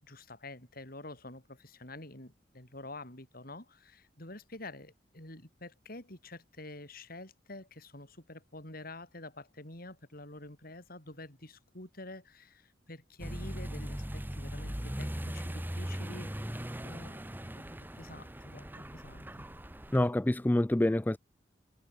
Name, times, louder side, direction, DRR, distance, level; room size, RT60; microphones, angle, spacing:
voice 1, 0.0-17.7 17.9-19.5, left 2 dB, 55° left, 7.2 m, -48 dB
Accelerating revving vroom, 13.2-20.1, equal, 10° right, 1.4 m, -39 dB
voice 2, 19.9-21.2, left 1 dB, 10° left, 0.4 m, -26 dB
head